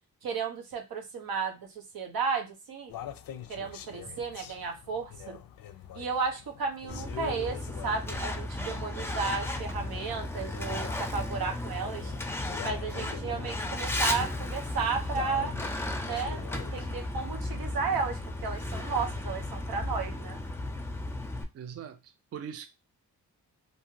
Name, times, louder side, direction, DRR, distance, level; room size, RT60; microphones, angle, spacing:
voice 1, 0.2-1.6 1.9-2.9 3.5-5.4 5.9-12.1 12.6-15.5 16.0-20.4, right 5 dB, 70° right, 0.9 m, -33 dB
sound 1, 2.9-18.2, left 9 dB, 65° left, 0.5 m, -46 dB
Truck, 6.9-21.4, left 2 dB, 5° left, 0.6 m, -34 dB
voice 2, 21.5-22.7, right 8 dB, 40° right, 0.4 m, -41 dB
2.8 x 2.3 x 3.1 m
cardioid pair, 55°, 37 cm